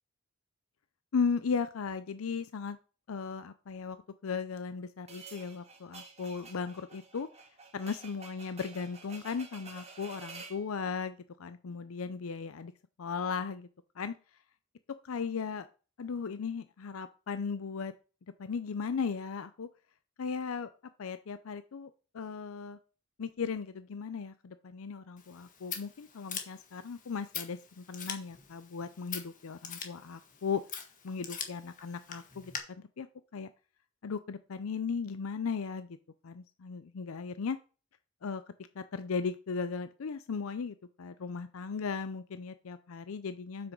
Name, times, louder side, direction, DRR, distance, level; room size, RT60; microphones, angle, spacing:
voice 1, 1.1-2.8 3.1-7.3 7.7-12.7 13.0-13.7 14.0-14.1 15.0-15.7 16.0-17.9 18.4-19.7 20.2-20.7 21.0-22.8 23.2-30.6 31.0-33.1 33.3-33.5 34.0-35.9 36.2-37.6 38.2-38.4 38.8-43.7, left 5 dB, 85° left, 12 dB, 0.5 m, -36 dB
sound 1, 5.1-10.6, right 4 dB, 30° right, 1.9 m, -50 dB
Scissors, 25.2-32.6, left 7 dB, 40° left, 1.5 m, -44 dB
7.8 x 6.1 x 5.3 m, 0.36 s
head